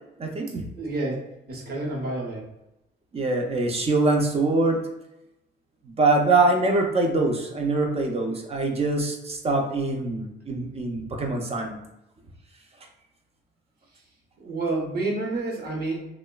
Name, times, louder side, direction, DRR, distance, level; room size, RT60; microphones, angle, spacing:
voice 1, 0.2-0.6 3.1-4.8 5.8-11.8, right 2 dB, 30° right, 2 dB, 0.5 m, -24 dB
voice 2, 0.8-2.5 14.4-16.0, right 2 dB, 50° right, -1 dB, 0.9 m, -29 dB
3.0 x 2.0 x 2.2 m, 0.92 s
cardioid pair, 90°, 20 cm